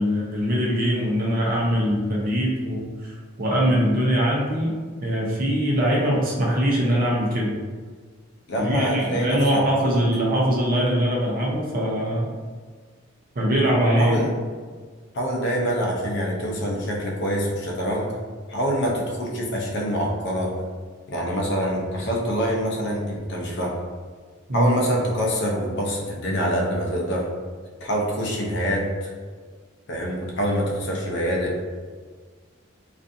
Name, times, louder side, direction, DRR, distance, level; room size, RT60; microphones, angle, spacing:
voice 1, 0.0-4.7 5.0-7.5 8.6-12.3 13.3-14.2 24.5-24.7, equal, 45° right, -3 dB, 0.6 m, -22 dB
voice 2, 8.5-9.6 14.0-14.3 15.1-18.2 18.5-20.6 21.1-23.8 24.5-27.3 27.8-29.1 29.9-31.6, equal, 60° left, -1 dB, 0.5 m, -25 dB
2.5 x 2.5 x 2.5 m, 1.5 s
head